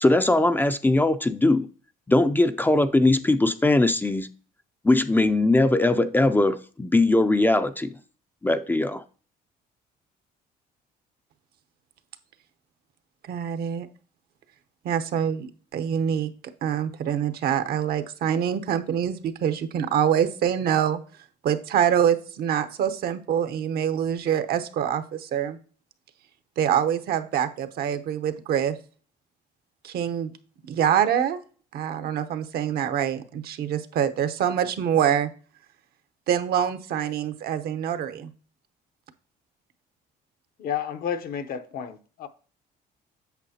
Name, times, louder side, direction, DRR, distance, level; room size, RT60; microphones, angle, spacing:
voice 1, 0.0-1.7 2.1-4.3 4.8-8.0 8.4-9.0, left 2 dB, 10° left, 0.4 m, -20 dB
voice 2, 13.3-13.9 14.8-16.3 16.6-21.0 21.4-25.6 26.6-28.8 29.8-30.3 30.7-31.4 31.7-35.3 36.3-38.3, right 9 dB, 65° right, 0.8 m, -25 dB
voice 3, 40.6-42.3, left 8 dB, 60° left, 0.8 m, -31 dB
8.2 x 6.4 x 2.8 m
cardioid pair, 110°, 17 cm